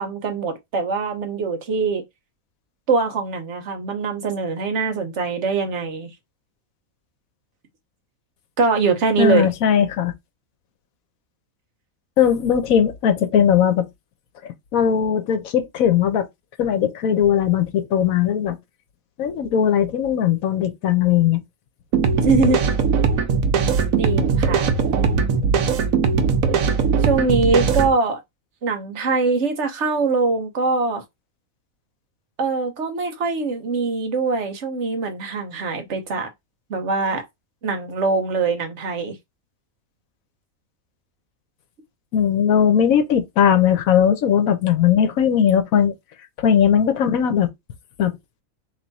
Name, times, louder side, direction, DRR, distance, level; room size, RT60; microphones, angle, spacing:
voice 1, 0.0-2.0 2.9-6.1 8.6-9.5 22.2-22.6 24.0-24.7 27.0-28.2 28.6-31.0 32.4-36.3 36.7-37.2 37.6-39.2, right 4 dB, 60° right, 1.2 m, -22 dB
voice 2, 9.2-10.1 12.2-13.9 14.7-16.3 16.6-18.6 19.2-21.4 42.1-45.9 46.4-47.5 48.0-48.1, left 8 dB, 80° left, 1.2 m, -18 dB
sound 1, 21.9-27.9, right 5 dB, 75° right, 1.2 m, -20 dB
3.4 x 3.0 x 4.0 m
omnidirectional pair, 1.5 m